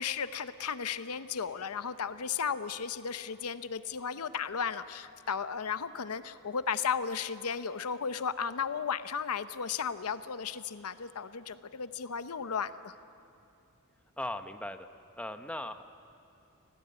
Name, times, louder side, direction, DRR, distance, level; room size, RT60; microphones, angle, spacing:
voice 1, 0.0-13.0, left 6 dB, 85° left, 12 dB, 0.7 m, -35 dB
voice 2, 14.2-14.9 15.2-15.9, left 1 dB, 5° left, 8 dB, 0.8 m, -38 dB
25.5 x 17.5 x 8.4 m, 2.7 s
head